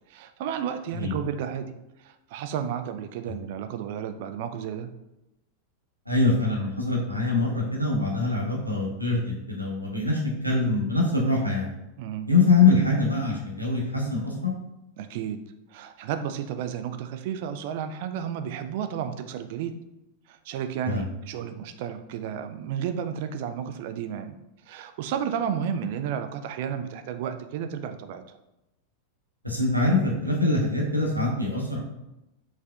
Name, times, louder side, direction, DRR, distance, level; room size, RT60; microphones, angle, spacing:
voice 1, 0.1-1.7 2.0-4.9 12.0-12.3 15.0-15.4 15.7-19.8 20.3-24.3 24.7-28.2, right 8 dB, 50° right, 9 dB, 0.3 m, -32 dB
voice 2, 6.1-11.7 12.3-14.5 20.8-21.1 29.4-31.8, left 3 dB, 90° right, -2 dB, 0.9 m, -24 dB
4.8 x 3.4 x 2.3 m, 0.92 s
figure-of-eight pair, 90°, 0 cm